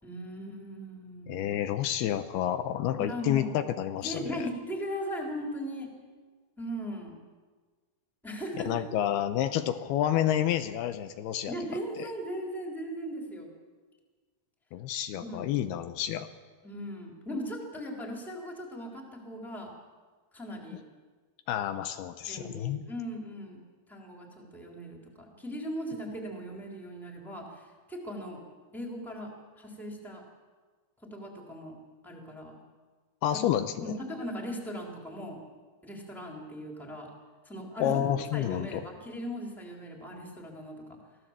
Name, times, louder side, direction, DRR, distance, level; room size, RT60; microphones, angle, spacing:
voice 1, 0.0-1.5 3.1-3.5 3.9-5.9 6.6-7.2 8.2-8.7 11.5-13.5 15.1-15.5 16.6-19.7 20.3-20.8 22.3-23.6 23.9-28.4 28.7-30.2 31.0-31.7 32.0-32.6 33.8-35.4 35.8-37.1 37.4-38.0 38.3-41.0, equal, ahead, 0 dB, 3.4 m, -38 dB
voice 2, 1.3-4.3 8.7-11.5 12.0-12.1 14.7-16.3 21.5-22.9 33.2-33.8 37.8-38.8, left 11 dB, 80° left, 9 dB, 2.7 m, -29 dB
25.5 x 16.5 x 7.5 m, 1.4 s
omnidirectional pair, 4.6 m